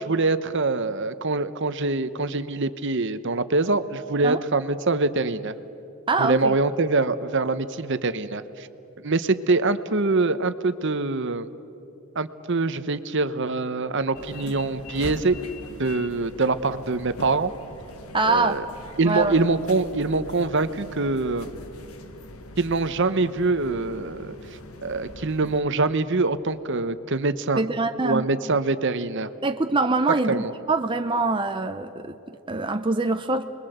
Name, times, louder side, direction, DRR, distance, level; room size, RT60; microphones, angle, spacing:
voice 1, 0.0-5.5 6.2-8.7 9.0-11.5 12.1-15.4 15.8-17.5 18.2-18.7 19.0-21.5 22.6-24.3 24.8-27.6 28.0-29.3 30.3-30.5, right 3 dB, 55° right, 12 dB, 0.9 m, -24 dB
voice 2, 6.1-6.5 18.1-18.6 19.0-19.4 27.6-28.3 29.4-30.4 30.7-33.4, right 3 dB, 20° right, 6 dB, 0.7 m, -24 dB
sound 1, 14.1-25.6, left 2 dB, 80° left, 1.5 m, -42 dB
29.5 x 21.5 x 8.0 m, 2.8 s
head